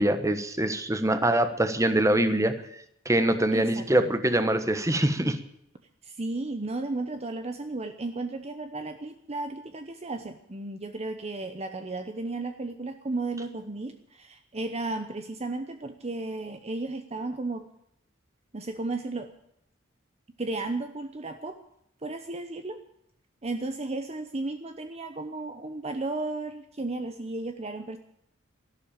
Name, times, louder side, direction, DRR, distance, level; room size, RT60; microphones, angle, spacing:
voice 1, 0.0-2.6 3.0-5.4, right 1 dB, 15° right, 10 dB, 1.3 m, -24 dB
voice 2, 3.5-3.9 6.0-17.7 18.5-19.3 20.4-21.6 22.0-22.8 23.4-28.0, right 2 dB, 35° right, 7 dB, 0.9 m, -34 dB
13.5 x 12.0 x 8.7 m, 0.75 s
head